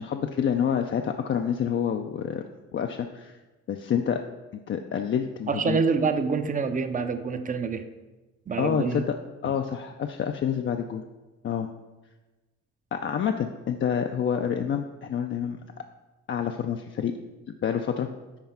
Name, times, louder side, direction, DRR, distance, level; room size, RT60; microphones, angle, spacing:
voice 1, 0.0-2.5 2.7-3.4 3.7-4.2 4.5-5.8 8.6-9.2 9.4-11.0 11.4-11.7 12.9-15.6 16.3-17.1 17.6-18.1, left 8 dB, 40° left, 5 dB, 0.4 m, -28 dB
voice 2, 5.5-7.9 8.5-9.0 9.4-9.5, right 5 dB, 25° right, 9 dB, 0.6 m, -26 dB
5.9 x 4.2 x 5.6 m, 1.2 s
cardioid pair, 90°, 30 cm